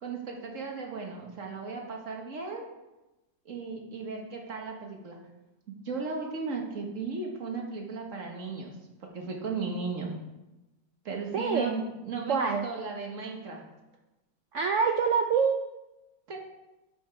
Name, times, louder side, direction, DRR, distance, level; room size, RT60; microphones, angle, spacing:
voice 1, 0.0-2.7 3.4-5.2 5.8-8.7 9.0-10.2 11.0-13.6 16.3-16.4, right 4 dB, 45° right, 1 dB, 1.7 m, -36 dB
voice 2, 11.3-11.8 12.3-12.6 14.5-15.6, right 6 dB, 85° right, 4 dB, 0.6 m, -25 dB
11.5 x 5.4 x 4.6 m, 1.0 s
omnidirectional pair, 2.0 m